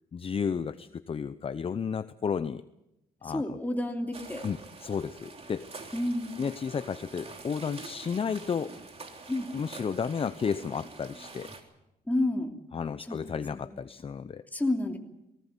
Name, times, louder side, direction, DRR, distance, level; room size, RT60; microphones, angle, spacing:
voice 1, 0.1-2.6 3.2-3.6 4.4-5.8 6.4-8.7 9.5-11.5 12.7-14.4, left 6 dB, 35° left, 13 dB, 0.7 m, -32 dB
voice 2, 3.2-4.5 5.9-6.4 9.3-9.5 12.1-12.5 13.1-13.7 14.5-15.0, left 1 dB, 10° left, 3 dB, 2.9 m, -30 dB
sound 1, 4.1-11.6, right 3 dB, 40° right, 3.3 m, -46 dB
19.0 x 19.0 x 8.2 m, 0.89 s
cardioid pair, 95°, 16 cm